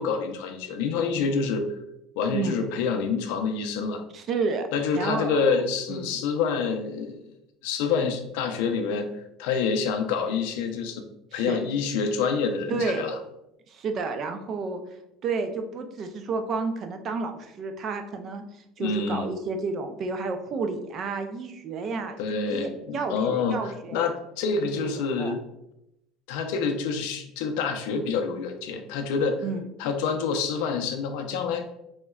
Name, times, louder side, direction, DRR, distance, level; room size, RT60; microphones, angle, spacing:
voice 1, 0.0-1.7 2.2-4.0 4.7-7.2 7.6-9.1 9.4-11.0 11.3-13.2 18.8-19.3 22.2-25.4 26.3-29.4 29.8-31.7, left 5 dB, 80° left, 5 dB, 0.4 m, -27 dB
voice 2, 4.1-4.7 4.9-5.6 5.9-6.1 11.3-11.6 12.7-13.0 13.7-14.8 15.2-18.4 18.8-24.1 24.8-24.9 25.2-25.4 29.4-29.6, right 4 dB, 45° right, 6 dB, 0.4 m, -31 dB
3.7 x 2.1 x 2.3 m, 0.84 s
supercardioid pair, 115°, 0 cm